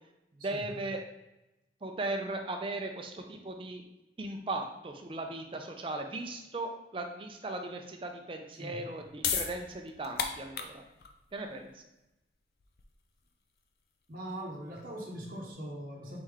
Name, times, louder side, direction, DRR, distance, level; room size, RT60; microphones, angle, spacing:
voice 1, 0.4-1.0 1.8-3.8 4.2-10.8 11.3-11.8, right 2 dB, 30° right, 4 dB, 0.4 m, -37 dB
sound 1, 8.8-15.5, left 7 dB, 55° left, 0.4 m, -38 dB
voice 2, 14.1-16.2, right 1 dB, 50° right, -2 dB, 0.8 m, -41 dB
4.2 x 3.2 x 3.6 m, 0.94 s
head